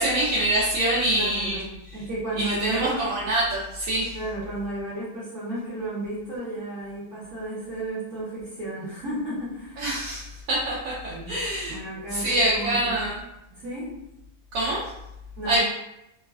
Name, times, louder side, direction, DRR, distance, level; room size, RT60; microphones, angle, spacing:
voice 1, 0.0-1.6 2.4-4.2 9.8-11.8 12.1-13.2 14.5-14.9 15.4-15.6, right 1 dB, 90° right, -6 dB, 1.0 m, -25 dB
voice 2, 1.1-1.6 1.9-3.0 4.1-9.9 11.1-11.3 11.7-12.9 13.6-13.9 15.4-15.6, right 1 dB, 65° right, -9 dB, 1.2 m, -33 dB
3.1 x 2.2 x 2.3 m, 0.86 s
omnidirectional pair, 1.4 m